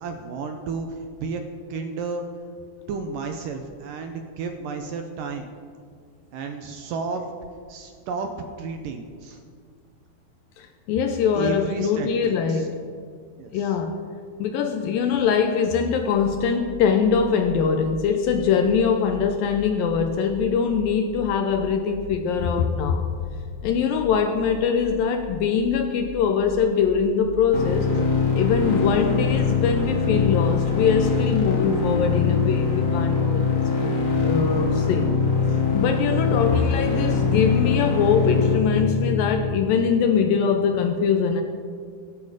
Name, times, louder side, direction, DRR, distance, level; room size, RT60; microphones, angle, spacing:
voice 1, 0.0-1.4 1.7-2.3 2.9-5.5 6.3-7.2 7.7-8.3 8.6-9.4 11.4-12.7 13.4-13.7, right 4 dB, 75° right, 5 dB, 2.3 m, -32 dB
voice 2, 10.6-12.8 13.5-14.0 14.4-23.0 23.6-27.9 28.3-33.9 34.2-35.1 35.7-41.4, left 6 dB, 80° left, 5 dB, 2.4 m, -22 dB
sound 1, 16.1-31.4, left 7 dB, 10° left, 3.9 m, -41 dB
sound 2, 27.5-39.5, left 5 dB, 45° left, 1.1 m, -22 dB
23.5 x 8.6 x 5.0 m, 2.1 s
omnidirectional pair, 4.3 m